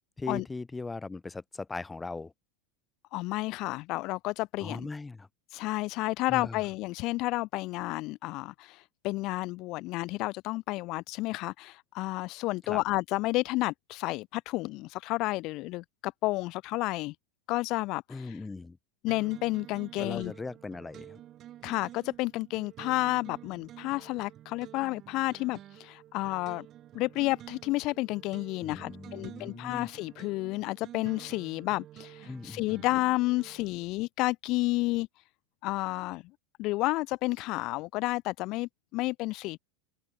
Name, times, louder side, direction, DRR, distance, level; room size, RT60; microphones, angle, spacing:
voice 1, 0.2-2.3 4.6-5.3 6.3-6.6 12.6-12.8 18.1-18.8 20.0-21.2 28.6-29.9 32.3-32.8, left 3 dB, 15° left, 1.5 m, -39 dB
voice 2, 3.1-4.9 5.5-17.1 17.5-18.4 19.0-20.3 21.6-26.7 26.9-35.1 35.6-36.2 36.6-39.6, left 20 dB, 50° left, 0.8 m, -31 dB
sound 1, 19.1-33.8, right 12 dB, 40° right, 4.5 m, -50 dB
hypercardioid pair, 105°, 0 cm